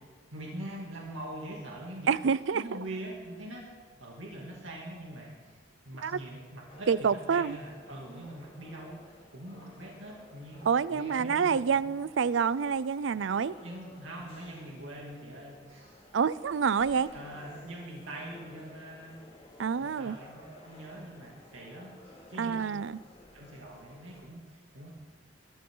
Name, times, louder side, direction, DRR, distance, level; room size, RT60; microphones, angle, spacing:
voice 1, 0.3-2.2 2.5-3.7 4.0-5.6 5.8-10.6 10.9-11.9 13.6-16.0 16.8-19.2 19.8-22.6 23.3-24.9, right 1 dB, 90° right, -3 dB, 2.7 m, -43 dB
voice 2, 2.1-2.6 6.0-6.1 6.9-7.6 10.6-13.5 16.1-17.1 19.6-20.2 22.4-23.0, right 6 dB, 70° right, 18 dB, 0.4 m, -27 dB
sound 1, 6.7-24.2, left 2 dB, 30° left, 2.4 m, -55 dB
21.5 x 13.5 x 3.9 m, 1.5 s
head